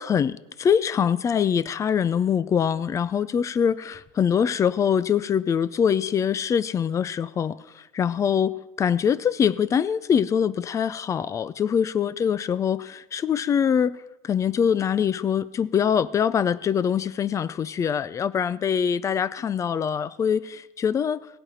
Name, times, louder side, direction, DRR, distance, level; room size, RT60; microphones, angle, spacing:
voice 1, 0.0-14.0 14.2-21.3, left 7 dB, 20° left, 0.4 m, -24 dB
17.5 x 8.8 x 5.6 m
supercardioid pair, 145°, 17 cm